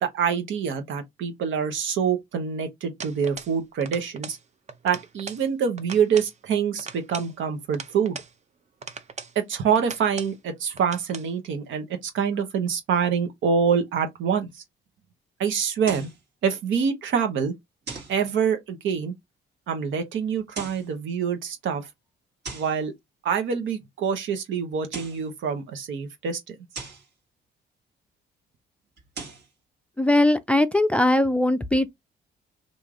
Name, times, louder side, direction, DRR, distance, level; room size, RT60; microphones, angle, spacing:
voice 1, 0.0-4.4 4.8-8.2 9.3-14.6 15.4-16.1 16.4-17.5 18.1-19.1 19.7-21.9 22.5-22.9 23.2-26.6, right 7 dB, 75° right, 1.0 m, -26 dB
sound 1, 3.0-3.6 3.8-4.4 4.7-5.4 5.8-6.3 6.8-8.3 8.8-9.4 9.7-10.4 10.8-11.3, right 5 dB, 35° right, 0.7 m, -39 dB
sound 2, 15.8-16.2 17.9-18.2 20.4-20.9 22.4-22.8 24.7-25.3 26.7-27.1 29.0-29.5, right 4 dB, 55° right, 1.6 m, -38 dB
voice 2, 30.0-31.9, left 1 dB, 5° left, 0.4 m, -20 dB
3.2 x 2.6 x 3.7 m
cardioid pair, 90°, 20 cm